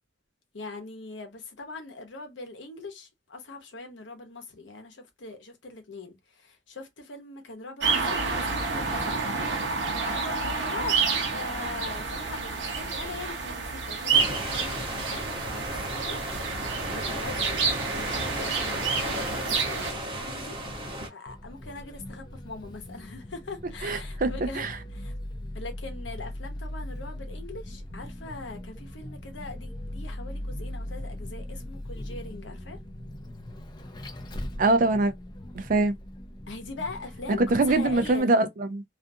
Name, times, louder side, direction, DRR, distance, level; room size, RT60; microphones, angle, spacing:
voice 1, 0.5-9.2 10.0-11.0 11.3-16.2 16.5-17.6 17.9-20.6 20.8-25.1 25.5-32.8 36.5-38.3, left 3 dB, 80° left, 0.8 m, -41 dB
sound 1, 7.8-19.9, right 4 dB, 75° right, 0.7 m, -29 dB
sound 2, 14.1-21.1, equal, 25° right, 1.0 m, -34 dB
Vehicle, 21.3-38.2, left 1 dB, 25° left, 0.3 m, -39 dB
voice 2, 23.8-24.7 34.6-35.1 35.6-35.9 37.4-38.8, right 2 dB, 45° right, 0.4 m, -23 dB
2.5 x 2.3 x 2.5 m
head